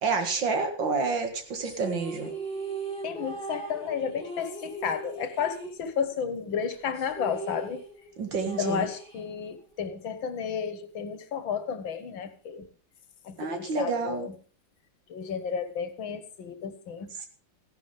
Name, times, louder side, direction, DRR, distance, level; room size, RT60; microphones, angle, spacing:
voice 1, 0.0-2.3 8.2-8.9 13.4-14.3, right 4 dB, 70° right, 6 dB, 2.5 m, -29 dB
sound 1, 1.6-6.3 6.5-6.6 6.9-9.6, right 3 dB, 25° right, 6.1 m, -39 dB
voice 2, 3.0-7.8 8.6-12.7 13.2-14.3 15.1-17.1, left 7 dB, 75° left, 11 dB, 2.0 m, -32 dB
14.5 x 11.0 x 3.4 m, 0.39 s
omnidirectional pair, 2.1 m